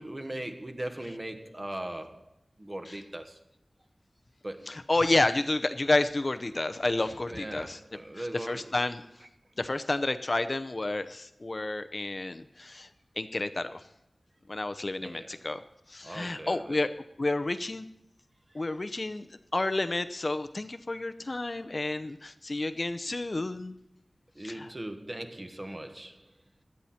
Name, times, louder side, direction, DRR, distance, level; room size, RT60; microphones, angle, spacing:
voice 1, 0.0-2.3 2.6-3.4 4.4-4.8 7.3-8.8 15.0-15.4 16.0-16.8 18.5-18.6 24.3-26.3, right 1 dB, 30° right, 6 dB, 1.5 m, -39 dB
voice 2, 4.7-7.8 8.1-9.0 9.6-12.9 13.2-13.9 14.5-15.6 15.9-16.9 17.2-17.9 18.5-23.7 24.4-24.7, left 2 dB, 45° left, 11 dB, 0.7 m, -30 dB
17.0 x 12.0 x 4.3 m, 0.83 s
wide cardioid pair, 80°, 0 cm